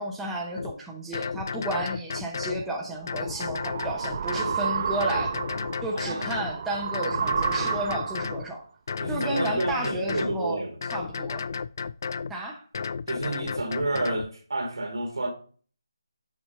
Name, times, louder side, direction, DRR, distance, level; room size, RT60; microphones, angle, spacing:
voice 1, 0.0-5.3 5.8-8.6 9.1-10.6 10.9-11.4 12.3-12.6, right 1 dB, 5° right, 0.8 m, -32 dB
sound 1, 0.6-0.7 1.1-2.7 3.1-4.6 5.0-6.5 6.9-8.5 8.9-10.4 10.8-12.3 12.7-14.3, left 5 dB, 45° left, 0.3 m, -33 dB
sound 2, 2.8-8.5, right 6 dB, 30° right, 0.4 m, -31 dB
voice 2, 5.9-6.5 9.0-10.8 13.1-15.3, right 2 dB, 70° right, 1.9 m, -30 dB
7.1 x 4.3 x 4.3 m
figure-of-eight pair, 160°, 2 cm